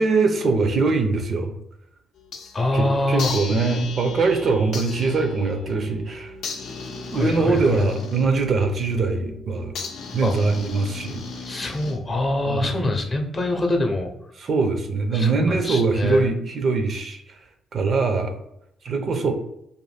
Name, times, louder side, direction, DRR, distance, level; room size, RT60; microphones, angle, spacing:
voice 1, 0.0-1.5 2.7-6.3 7.1-9.7 10.1-11.2 12.5-12.7 14.4-17.2 17.7-18.4 18.8-19.3, right 4 dB, 50° right, 6 dB, 0.4 m, -22 dB
sound 1, 2.2-2.7 3.2-12.3, left 4 dB, 75° left, 0.5 m, -36 dB
voice 2, 2.5-3.3 7.1-7.8 10.2-10.3 11.4-14.1 15.1-16.3, left 2 dB, 30° left, 3 dB, 0.6 m, -24 dB
2.5 x 2.2 x 3.2 m, 0.77 s
cardioid pair, 90°, 0 cm